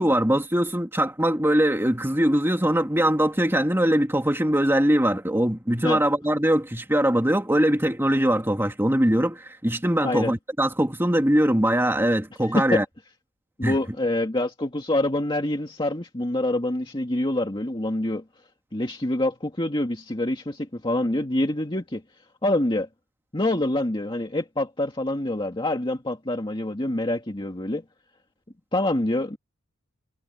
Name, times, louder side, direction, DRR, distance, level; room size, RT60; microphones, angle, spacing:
voice 1, 0.0-12.8 13.6-13.8, right 1 dB, 10° right, 2.4 m, -22 dB
voice 2, 10.0-10.3 12.6-12.8 13.6-18.2 18.7-22.0 22.4-22.9 23.3-27.8 28.7-29.4, left 1 dB, 20° left, 2.0 m, -26 dB
head